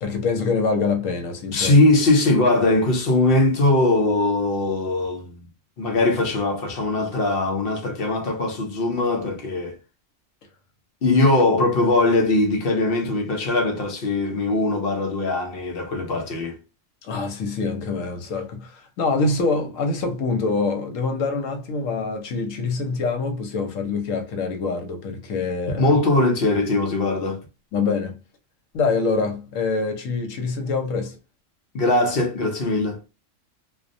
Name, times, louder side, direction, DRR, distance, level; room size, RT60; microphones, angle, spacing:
voice 1, 0.0-1.8 17.0-26.0 27.7-28.2 28.7-31.2, left 4 dB, 75° left, 1.0 m, -25 dB
voice 2, 1.5-5.5 5.8-9.8 11.0-16.6 25.8-27.4 31.7-33.0, left 2 dB, 55° left, 0.7 m, -20 dB
2.4 x 2.1 x 2.5 m
omnidirectional pair, 1.4 m